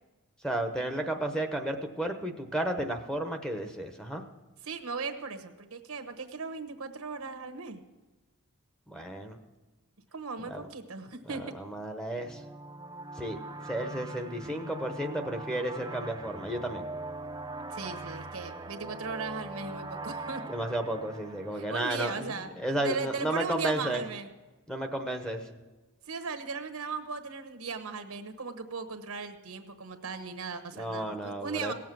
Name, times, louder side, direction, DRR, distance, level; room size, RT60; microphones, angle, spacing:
voice 1, 0.4-4.2 8.9-9.4 10.4-10.7 11.5-12.4 13.2-13.4 13.7-16.8 20.5-24.0 24.7-25.4 30.8-31.7, right 1 dB, 5° left, 3 dB, 0.9 m, -33 dB
voice 2, 4.6-7.8 10.1-11.5 17.7-20.4 21.5-24.3 26.1-31.7, right 4 dB, 80° right, 9 dB, 1.1 m, -37 dB
sound 1, 12.2-22.5, right 2 dB, 20° right, 0.5 m, -42 dB
17.5 x 7.4 x 6.1 m, 1.2 s
head